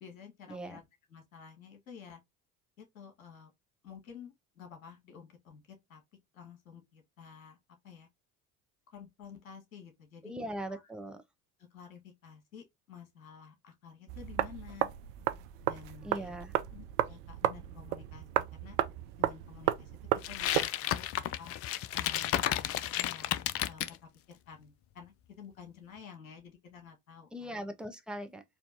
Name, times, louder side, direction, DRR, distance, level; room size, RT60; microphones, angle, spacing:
voice 1, 0.0-2.2 2.8-3.5 3.8-6.0 6.3-7.6 7.8-8.1 8.9-10.3 10.7-10.9 11.7-14.9 15.6-16.3 16.7-18.8 19.2-19.9 20.3-21.6 21.9-22.7 23.0-27.5, left 7 dB, 75° left, 1.6 m, -51 dB
voice 2, 10.2-11.2 16.0-16.5 27.3-28.4, equal, ahead, 0.8 m, -40 dB
sound 1, 14.1-20.7, right 13 dB, 65° right, 0.6 m, -33 dB
sound 2, 20.2-24.0, left 12 dB, 35° left, 0.4 m, -32 dB
4.3 x 2.8 x 2.6 m
figure-of-eight pair, 60°, 41 cm